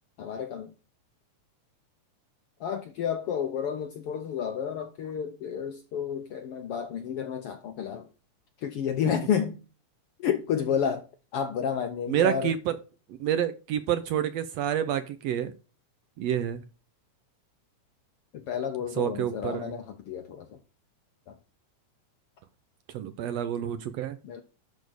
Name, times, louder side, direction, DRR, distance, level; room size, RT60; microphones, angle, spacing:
voice 1, 0.2-0.7 2.6-8.1 8.6-9.6 10.2-11.1 11.3-12.5 18.3-20.6 21.3-21.4 24.2-24.4, left 8 dB, 70° left, 1.4 m, -31 dB
voice 2, 12.1-12.8 13.2-15.5 16.2-16.6 19.0-19.7 22.9-24.2, right 10 dB, 70° right, 1.6 m, -28 dB
12.0 x 4.3 x 6.3 m
omnidirectional pair, 3.5 m